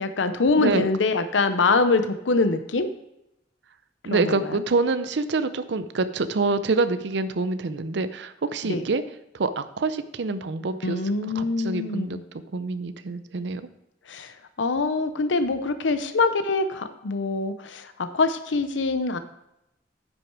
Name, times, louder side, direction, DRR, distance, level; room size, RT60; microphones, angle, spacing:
voice 1, 0.0-2.9 4.1-4.4 8.6-8.8 10.8-12.2 14.1-14.3 14.6-19.2, left 3 dB, 90° left, 10 dB, 0.7 m, -24 dB
voice 2, 0.6-0.9 4.0-9.0 9.3-11.0 11.3-13.6, right 3 dB, 70° right, 12 dB, 0.6 m, -26 dB
9.9 x 6.2 x 4.6 m, 0.86 s
head